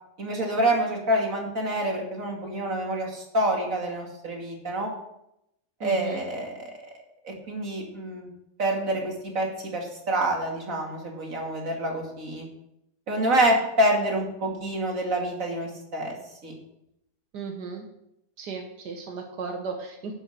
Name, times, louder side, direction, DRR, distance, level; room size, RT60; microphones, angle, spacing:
voice 1, 0.2-4.9 5.8-6.7 7.2-8.3 8.6-12.5 13.1-16.1 16.4-16.5, right 1 dB, 55° right, 0 dB, 2.9 m, -27 dB
voice 2, 5.8-6.2 17.3-17.9 18.4-20.1, right 4 dB, 90° right, 3 dB, 1.8 m, -35 dB
11.5 x 7.2 x 6.5 m, 0.81 s
omnidirectional pair, 1.7 m